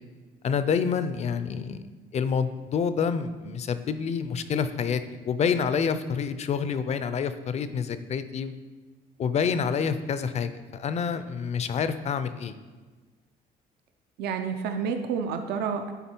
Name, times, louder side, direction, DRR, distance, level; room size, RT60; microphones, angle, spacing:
voice 1, 0.4-1.8 2.1-8.5 9.2-12.5, left 6 dB, 40° left, 12 dB, 0.4 m, -28 dB
voice 2, 14.2-15.9, right 6 dB, 75° right, 6 dB, 0.6 m, -29 dB
9.2 x 3.8 x 4.4 m, 1.3 s
cardioid pair, 110°, 17 cm